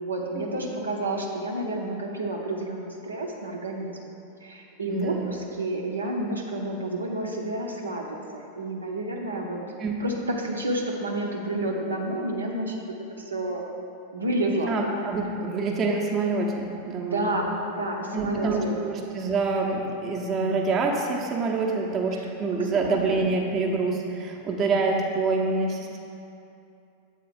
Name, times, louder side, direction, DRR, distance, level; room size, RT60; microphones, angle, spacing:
voice 1, 0.0-4.0 4.4-9.6 10.0-12.8 13.2-13.6 14.1-14.8 17.1-18.8 22.1-22.3 22.6-23.3, right 1 dB, 75° right, -1 dB, 0.7 m, -30 dB
voice 2, 4.9-5.3 9.8-10.0 14.7-17.3 18.1-26.0, right 3 dB, 25° right, 0 dB, 0.8 m, -26 dB
7.7 x 3.7 x 5.2 m, 2.7 s
figure-of-eight pair, 90°, 0 cm